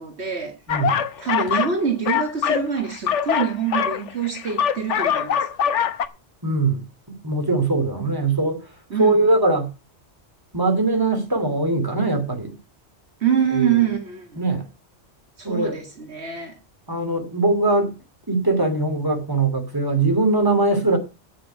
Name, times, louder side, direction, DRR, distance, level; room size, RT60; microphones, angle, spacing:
voice 1, 0.0-0.5 1.2-5.4 8.0-8.1 8.9-9.1 13.2-14.4 15.4-16.6, right 7 dB, 65° right, 2.0 m, -25 dB
sound 1, 0.7-1.8 2.1-6.1, left 8 dB, 85° left, 1.2 m, -23 dB
voice 2, 0.7-1.0 6.4-8.6 8.9-9.7 10.5-12.6 13.5-13.8 14.4-14.6 15.4-15.8 16.9-17.9 18.3-21.0, right 2 dB, 20° right, 2.9 m, -21 dB
8.8 x 7.5 x 8.1 m
omnidirectional pair, 1.2 m